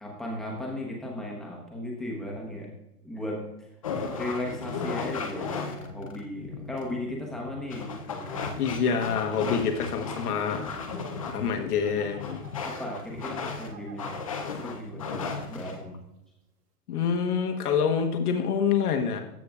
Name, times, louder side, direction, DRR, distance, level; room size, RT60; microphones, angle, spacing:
voice 1, 0.0-2.7 3.0-3.4 4.2-8.6 10.9-12.0 12.6-14.2 14.6-16.0, left 1 dB, ahead, -2 dB, 0.9 m, -36 dB
sound 1, 3.8-15.8, left 5 dB, 25° left, 0.4 m, -36 dB
sound 2, 8.1-8.2 8.7-14.4 15.0-15.1 15.4-15.5, right 6 dB, 80° right, 2.4 m, -51 dB
voice 2, 8.6-10.7 11.2-12.4 16.9-19.2, left 6 dB, 70° left, 5 dB, 1.3 m, -26 dB
14.0 x 6.5 x 2.4 m, 0.90 s
hypercardioid pair, 150°, 47 cm